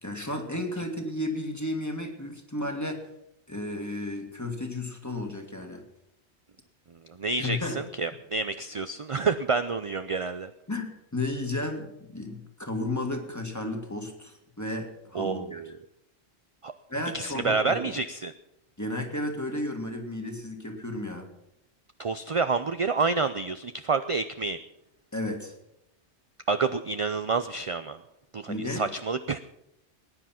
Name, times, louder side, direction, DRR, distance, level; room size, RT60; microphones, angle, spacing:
voice 1, 0.0-3.0 3.5-5.8 7.4-7.8 10.7-15.7 16.9-17.8 18.8-21.3 25.1-25.5 28.5-28.9, left 1 dB, 15° left, 4 dB, 2.1 m, -33 dB
voice 2, 7.2-10.5 15.1-15.8 16.6-16.7 17.1-18.3 22.0-24.6 26.5-28.0 28.3-29.4, right 4 dB, 40° right, 10 dB, 0.5 m, -28 dB
19.5 x 10.0 x 5.9 m, 0.83 s
omnidirectional pair, 1.2 m